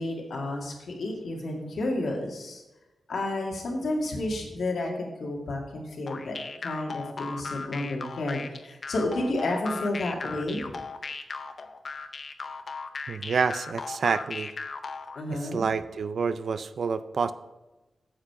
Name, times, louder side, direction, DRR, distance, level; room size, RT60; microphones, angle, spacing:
voice 1, 0.0-2.6 3.1-6.4 6.6-10.6 15.2-15.7, left 2 dB, 70° left, 0 dB, 2.0 m, -31 dB
sound 1, 6.1-15.2, left 4 dB, 45° left, 0.6 m, -37 dB
voice 2, 13.1-14.5 15.3-17.3, right 5 dB, 60° right, 13 dB, 0.4 m, -28 dB
8.8 x 7.4 x 4.8 m, 1.0 s
wide cardioid pair, 165°, 0 cm